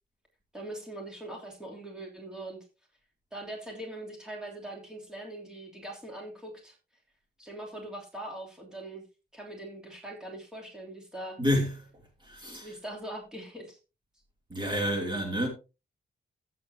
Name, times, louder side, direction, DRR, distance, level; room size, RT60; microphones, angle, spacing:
voice 1, 0.5-2.6 3.3-6.8 7.4-9.0 9.3-11.4 12.6-13.8, right 1 dB, 5° right, 3.1 m, -41 dB
voice 2, 11.4-12.7 14.5-15.5, equal, 25° right, 2.8 m, -30 dB
15.5 x 7.8 x 2.8 m
wide cardioid pair, 155°, 19 cm